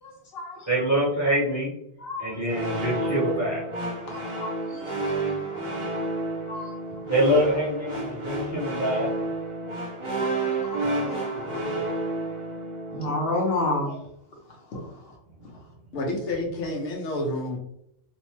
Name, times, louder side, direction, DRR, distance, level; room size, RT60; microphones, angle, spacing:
voice 1, 0.0-0.7 2.0-2.3 4.1-5.1 5.5-5.7 6.5-6.7 10.5-11.8 12.9-13.9 14.7-15.1, left 2 dB, 60° left, -1 dB, 0.9 m, -31 dB
voice 2, 0.7-1.7 2.2-3.7 7.1-9.1, right 1 dB, 15° right, -6 dB, 0.8 m, -25 dB
sound 1, 2.5-13.4, right 2 dB, 40° right, 0.5 m, -30 dB
voice 3, 10.8-11.9 15.9-17.6, left 1 dB, 90° left, 1 dB, 1.0 m, -31 dB
2.7 x 2.1 x 2.9 m, 0.76 s
omnidirectional pair, 1.2 m